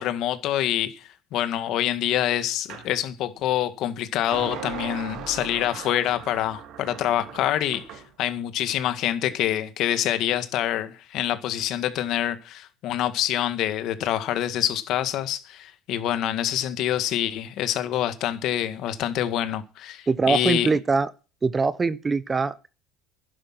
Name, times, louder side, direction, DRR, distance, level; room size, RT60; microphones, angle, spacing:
voice 1, 0.0-20.7, left 12 dB, 65° left, 1.9 m, -26 dB
sound 1, 2.7-2.9 4.3-8.1, right 8 dB, 65° right, 3.2 m, -38 dB
voice 2, 20.1-21.1 21.4-22.7, right 4 dB, 25° right, 0.9 m, -23 dB
11.5 x 10.0 x 6.1 m
supercardioid pair, 105°, 0 cm